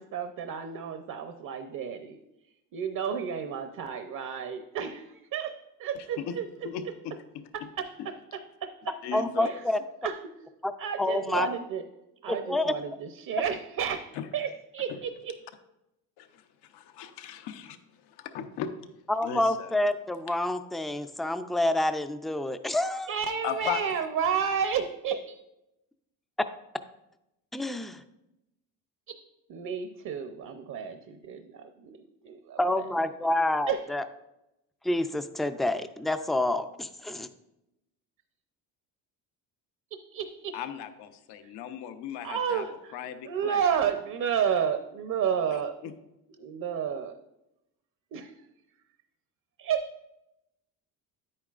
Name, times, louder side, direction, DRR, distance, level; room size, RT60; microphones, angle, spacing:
voice 1, 0.0-2.2 2.7-6.5 7.5-9.0 9.4-9.6 10.0-10.2 10.8-11.8 12.2-14.1 14.3-15.3 23.1-25.3 29.5-32.8 33.7-33.8 39.9-40.5 42.2-42.9 43.2-45.7 46.4-47.1 48.1-48.3 49.6-49.9, right 7 dB, 55° right, 7 dB, 0.7 m, -31 dB
voice 2, 5.9-6.4 6.6-7.4 9.0-9.6 14.1-14.3 14.9-15.0 16.2-17.8 18.0-18.7 19.2-19.7 23.4-23.8 40.5-42.6 42.9-43.6 45.8-45.9, left 9 dB, 80° left, 9 dB, 0.9 m, -37 dB
voice 3, 9.1-9.8 10.6-10.7 11.0-11.5 12.3-12.7 19.1-23.1 27.5-28.0 32.6-34.0 34.8-37.3, left 1 dB, ahead, 9 dB, 0.3 m, -28 dB
10.0 x 8.7 x 2.5 m, 0.90 s
cardioid pair, 105°, 39 cm